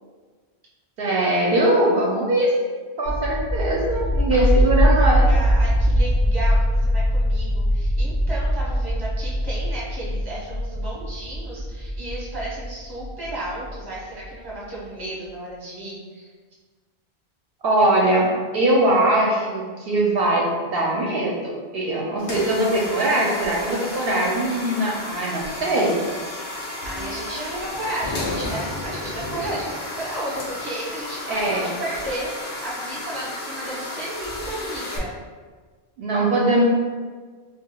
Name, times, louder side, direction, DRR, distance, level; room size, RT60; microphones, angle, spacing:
voice 1, 1.0-2.5 3.0-5.3 17.6-26.0 31.3-31.7 36.0-36.6, right 1 dB, 70° right, -3 dB, 0.7 m, -21 dB
sound 1, 3.1-13.7, equal, 75° left, 1.0 m, -21 dB
voice 2, 4.3-5.0 5.3-16.3 26.8-35.1, right 1 dB, 25° right, -6 dB, 0.9 m, -33 dB
sound 2, 22.2-35.0, left 2 dB, 60° left, 0.7 m, -32 dB
4.7 x 2.2 x 2.2 m, 1.5 s
omnidirectional pair, 1.1 m